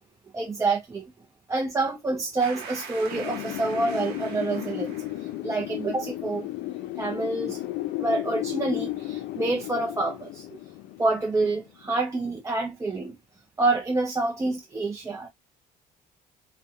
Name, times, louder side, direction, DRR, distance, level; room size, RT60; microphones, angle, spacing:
voice 1, 0.3-1.1 1.5-4.9 5.4-6.5 7.0-7.6 8.0-10.5 11.0-13.2 13.6-15.3, right 3 dB, 20° right, 0.4 m, -27 dB
sound 1, 2.4-5.3, right 6 dB, 85° right, 0.8 m, -42 dB
Wind, 3.1-11.8, left 15 dB, 80° left, 0.4 m, -34 dB
2.6 x 2.1 x 2.3 m
cardioid pair, 110°, 17 cm